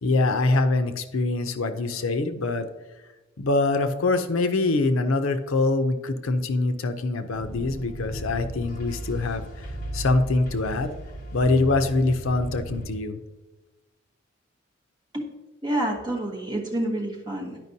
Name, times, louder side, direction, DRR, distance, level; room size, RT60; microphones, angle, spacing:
voice 1, 0.0-2.7 3.4-9.7 9.9-10.9 11.3-13.2, left 2 dB, 80° left, 9 dB, 0.6 m, -24 dB
sound 1, 7.3-12.9, right 1 dB, 40° left, 1.2 m, -36 dB
voice 2, 15.6-17.6, right 1 dB, 20° right, -1 dB, 1.2 m, -28 dB
10.5 x 5.1 x 2.7 m, 1.1 s
head